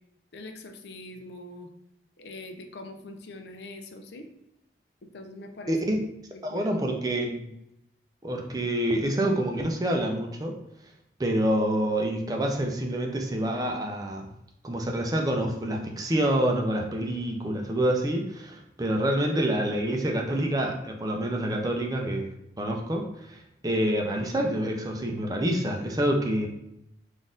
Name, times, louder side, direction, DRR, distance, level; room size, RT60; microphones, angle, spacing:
voice 1, 0.3-1.7 2.2-4.3 5.0-5.8 6.3-6.8, left 2 dB, 70° left, 5 dB, 0.5 m, -43 dB
voice 2, 6.4-7.5 8.2-10.5 11.2-14.3 14.6-26.5, right 1 dB, 20° right, 2 dB, 0.4 m, -27 dB
4.0 x 2.5 x 3.7 m, 0.83 s
head